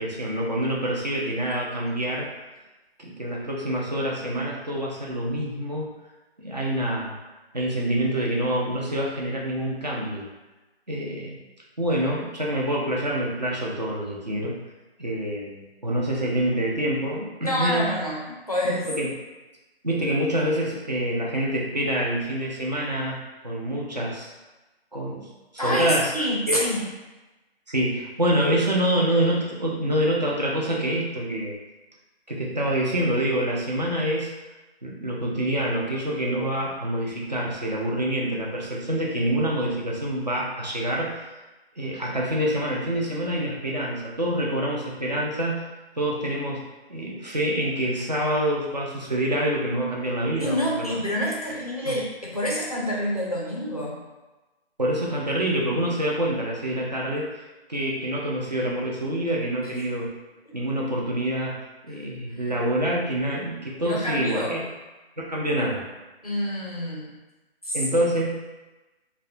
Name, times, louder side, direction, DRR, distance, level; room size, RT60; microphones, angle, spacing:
voice 1, 0.0-2.3 3.0-5.9 6.4-7.1 7.5-10.3 10.9-11.4 11.8-14.6 15.0-17.9 18.6-19.1 19.8-24.3 24.9-25.3 25.5-26.1 26.5-26.6 27.7-31.5 32.3-34.3 34.8-41.2 41.8-45.6 46.0-50.9 51.9-52.0 54.8-57.3 57.7-60.1 60.5-61.6 61.8-64.6 65.2-65.8 67.7-68.3, right 1 dB, 45° right, -3 dB, 0.4 m, -26 dB
voice 2, 17.4-18.9 25.6-26.9 50.4-54.0 59.6-59.8 60.5-60.6 62.3-62.5 63.8-64.6 66.2-67.1 67.6-67.8, equal, 40° left, -5 dB, 0.4 m, -27 dB
2.3 x 2.1 x 2.5 m, 1.1 s
figure-of-eight pair, 175°, 31 cm